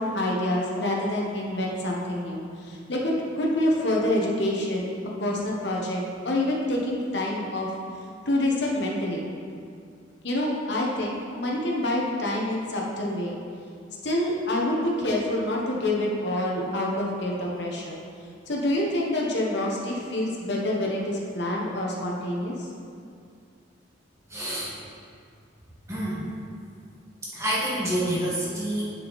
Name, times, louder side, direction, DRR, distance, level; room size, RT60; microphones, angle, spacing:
voice 1, 0.0-4.9 5.2-7.7 8.2-9.3 10.2-13.4 14.0-18.0 18.5-22.7, left 1 dB, 60° left, -2 dB, 1.3 m, -27 dB
voice 2, 24.3-24.7 25.9-26.2 27.3-28.9, right 1 dB, 15° right, -8 dB, 2.1 m, -28 dB
8.0 x 6.6 x 4.2 m, 2.3 s
head